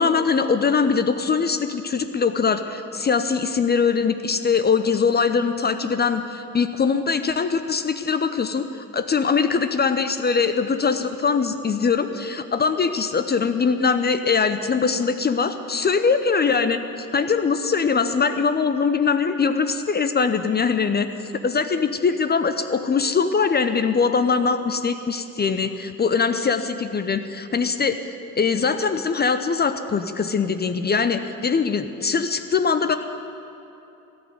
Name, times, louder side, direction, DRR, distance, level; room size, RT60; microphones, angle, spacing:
voice 1, 0.0-21.1 21.4-33.0, left 5 dB, 25° left, 10 dB, 0.7 m, -22 dB
14.0 x 7.0 x 9.3 m, 2.9 s
figure-of-eight pair, 45°, 39 cm